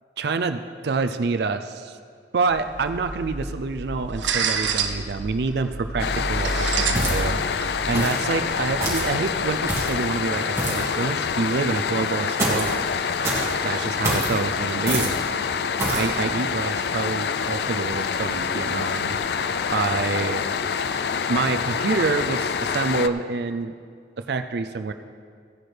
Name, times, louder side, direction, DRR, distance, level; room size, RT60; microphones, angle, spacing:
voice 1, 0.2-2.0 2.3-12.8 13.6-15.2 15.9-19.2 19.7-20.4 21.3-23.7 24.2-24.9, right 4 dB, 60° right, 8 dB, 0.4 m, -27 dB
sound 1, 2.5-9.8, right 4 dB, 80° right, 0.8 m, -30 dB
sound 2, 6.0-23.1, left 6 dB, 60° left, 0.4 m, -26 dB
sound 3, 6.9-7.4 7.9-8.3 8.8-9.1 9.7-10.0 10.6-10.9 12.4-12.8 13.2-13.5 14.0-14.3 14.9-15.2 15.8-16.1, right 2 dB, 15° right, 2.0 m, -26 dB
16.0 x 10.5 x 3.3 m, 2.1 s
head